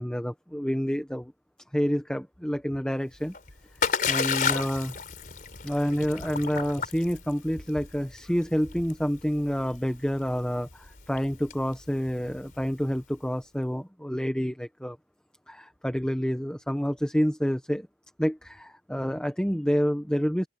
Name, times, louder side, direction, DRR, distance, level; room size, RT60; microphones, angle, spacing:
voice 1, 0.0-1.3 1.7-3.3 3.8-4.9 5.6-15.0 15.5-17.9 18.2-20.5, equal, 5° left, 1.2 m, -28 dB
Splash splatter, 3.1-13.0, left 6 dB, 50° left, 3.9 m, -33 dB
open air
head